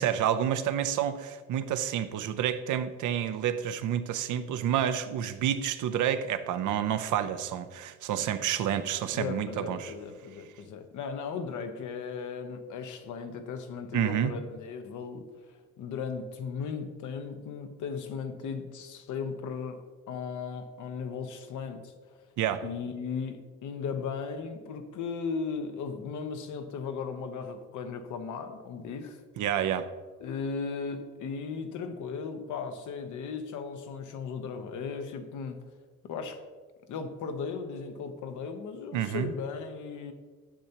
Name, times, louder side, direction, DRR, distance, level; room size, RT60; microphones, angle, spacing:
voice 1, 0.0-9.9 13.9-14.3 22.4-22.6 29.4-29.9 38.9-39.3, right 10 dB, 80° right, 11 dB, 0.6 m, -29 dB
voice 2, 9.1-15.3 15.8-19.8 20.1-21.9 22.6-29.2 30.2-35.6 36.0-36.4 36.9-40.1, left 5 dB, 80° left, 7 dB, 0.9 m, -36 dB
10.0 x 6.8 x 2.9 m, 1.4 s
cardioid pair, 90°, 30 cm